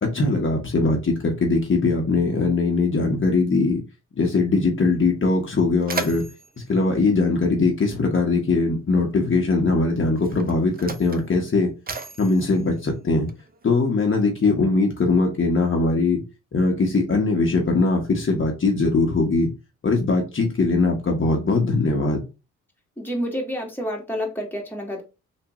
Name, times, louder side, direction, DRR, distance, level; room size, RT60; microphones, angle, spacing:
voice 1, 0.0-3.8 4.2-6.2 6.7-11.7 12.2-13.3 13.6-16.2 16.5-19.5 19.8-22.2, left 3 dB, 40° left, 1.1 m, -21 dB
Mechanisms, 4.9-5.0 5.4-8.1 9.1-9.3 10.1-13.7, right 4 dB, 30° right, 0.6 m, -36 dB
voice 2, 23.0-25.0, equal, 5° left, 1.5 m, -29 dB
3.5 x 2.6 x 3.0 m
supercardioid pair, 60°, 32 cm